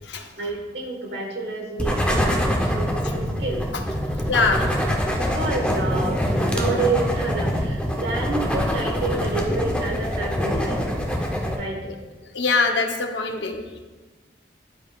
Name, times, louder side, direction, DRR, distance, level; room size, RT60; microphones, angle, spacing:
voice 1, 0.4-3.6 5.1-10.9 11.6-11.8, right 3 dB, 75° right, 0 dB, 1.4 m, -29 dB
sound 1, 1.8-11.6, equal, 5° left, 0.6 m, -24 dB
voice 2, 4.3-4.7 11.8-11.9 12.3-13.8, left 4 dB, 80° left, 4 dB, 0.7 m, -23 dB
11.0 x 5.0 x 2.3 m, 1.3 s
head